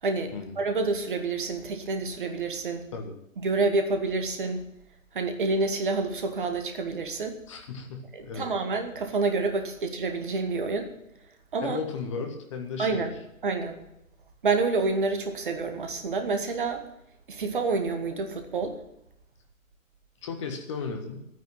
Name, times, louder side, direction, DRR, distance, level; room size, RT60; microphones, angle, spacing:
voice 1, 0.0-2.9 3.4-4.6 5.1-7.4 8.1-10.9 11.5-11.8 12.8-13.1 13.4-13.8 14.4-16.9 17.3-18.8, right 3 dB, 40° right, 6 dB, 2.0 m, -28 dB
voice 2, 7.5-8.5 11.6-13.0 20.2-21.3, left 5 dB, 20° left, 4 dB, 1.7 m, -35 dB
11.5 x 9.5 x 9.1 m, 0.82 s
figure-of-eight pair, 145°, 41 cm